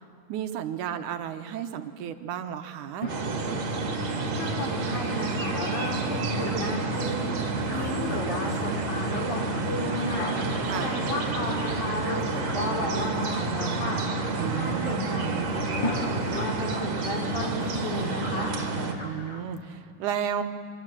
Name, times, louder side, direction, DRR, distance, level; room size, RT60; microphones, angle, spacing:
voice 1, 0.3-3.1 10.6-11.0 14.4-15.5 19.0-20.4, right 9 dB, 75° right, 8 dB, 2.4 m, -33 dB
sound 1, 3.0-6.4 10.2-12.2 15.8-18.9, left 2 dB, 50° left, 1.5 m, -40 dB
sound 2, 3.1-18.9, right 3 dB, 55° right, 3.3 m, -29 dB
voice 2, 4.4-7.3 7.7-10.3 10.7-14.0 14.6-15.6 15.9-18.5, left 1 dB, 65° left, -2 dB, 5.5 m, -33 dB
sound 3, 6.4-19.4, left 1 dB, 20° left, 1.5 m, -46 dB
25.0 x 24.5 x 7.5 m, 2.5 s
omnidirectional pair, 3.7 m